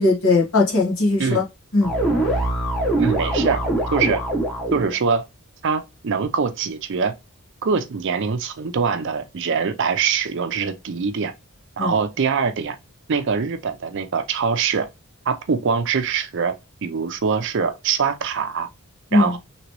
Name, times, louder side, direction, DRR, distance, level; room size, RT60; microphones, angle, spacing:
voice 1, 0.0-1.4 1.7-1.9 11.8-12.0 19.1-19.3, left 2 dB, 65° left, 1.2 m, -19 dB
sound 1, 1.8-4.9, right 1 dB, ahead, 0.8 m, -23 dB
voice 2, 3.0-3.6 3.9-4.2 4.7-5.2 5.6-7.1 7.6-11.3 11.8-12.8 13.1-14.9 15.3-16.5 16.8-18.7 19.1-19.4, right 5 dB, 55° right, 0.5 m, -23 dB
3.0 x 3.0 x 2.9 m
head